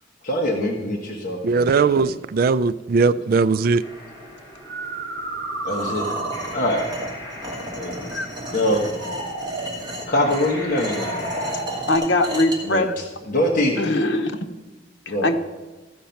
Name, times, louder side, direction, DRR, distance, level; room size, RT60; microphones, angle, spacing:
voice 1, 0.2-2.1 3.1-3.2 5.6-6.1 6.5-6.9 7.7-8.1 8.5-8.8 10.1-11.1 12.6-12.9 13.3-13.8 15.1-15.3, left 1 dB, 45° left, 1.2 m, -23 dB
voice 2, 1.4-3.8, right 4 dB, 50° right, 0.3 m, -19 dB
sound 1, 3.5-3.7 4.5-6.8 8.7-9.9 10.8-12.0, right 2 dB, 75° right, 1.0 m, -32 dB
sound 2, 3.8-11.6, left 1 dB, 20° left, 2.9 m, -40 dB
sound 3, 5.7-12.6, equal, 25° right, 1.9 m, -33 dB
voice 3, 11.9-12.9 13.8-14.4 15.1-15.3, left 2 dB, 90° left, 0.9 m, -21 dB
14.5 x 5.2 x 5.7 m
head